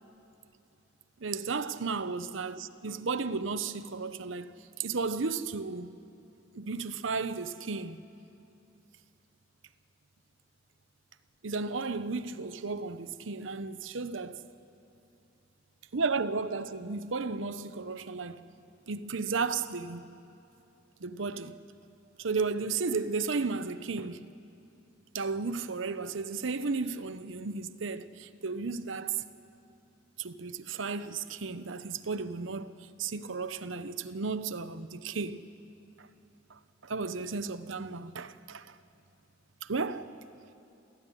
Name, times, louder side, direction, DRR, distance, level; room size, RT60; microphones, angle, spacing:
voice 1, 1.2-5.9 6.5-8.0 11.4-14.4 15.9-18.4 18.9-20.1 21.0-21.6 22.2-24.3 25.1-29.2 30.2-35.4 36.0-36.1 36.8-38.7 39.6-40.1, right 4 dB, 75° right, 0.8 m, -34 dB
28.5 x 14.5 x 9.9 m
head